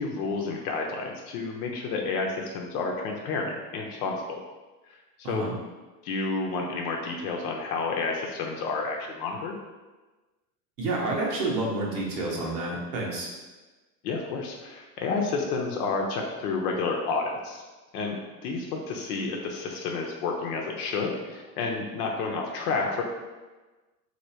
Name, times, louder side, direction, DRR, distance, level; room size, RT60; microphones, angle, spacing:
voice 1, 0.0-4.4 5.3-5.5 6.0-9.5 14.0-17.6 17.9-23.0, left 4 dB, 70° left, 1 dB, 0.7 m, -30 dB
voice 2, 10.8-13.3, right 2 dB, 85° right, -3 dB, 1.1 m, -29 dB
3.1 x 2.8 x 2.7 m, 1.2 s
hypercardioid pair, 110°, 47 cm